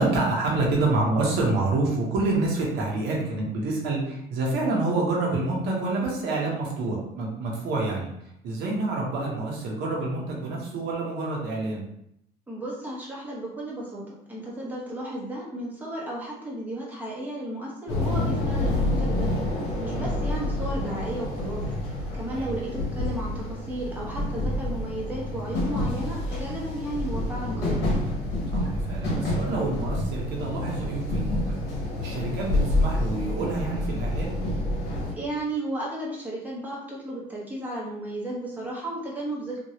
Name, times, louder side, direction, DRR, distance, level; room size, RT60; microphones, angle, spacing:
voice 1, 0.0-8.1 8.4-11.8 19.9-20.1 22.3-22.5 28.5-31.6 32.0-34.4, right 2 dB, 80° right, -2 dB, 1.0 m, -27 dB
voice 2, 12.5-19.3 19.8-21.6 22.1-27.9 35.2-39.6, right 1 dB, 10° right, -5 dB, 1.1 m, -34 dB
sound 1, 17.9-35.1, left 1 dB, 80° left, 1.0 m, -28 dB
3.0 x 2.6 x 2.8 m, 0.76 s
cardioid pair, 110°, 17 cm